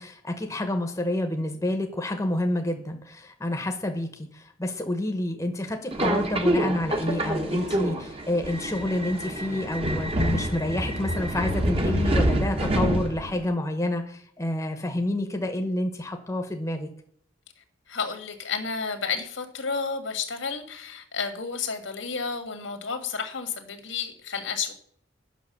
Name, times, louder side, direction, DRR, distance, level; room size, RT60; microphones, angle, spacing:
voice 1, 0.0-16.9, left 1 dB, 15° left, 4 dB, 0.9 m, -29 dB
Subway metro underground, 5.9-13.5, right 1 dB, 30° right, 1.0 m, -27 dB
voice 2, 17.9-24.7, left 5 dB, 80° left, 7 dB, 1.6 m, -31 dB
8.4 x 5.9 x 6.6 m, 0.63 s
head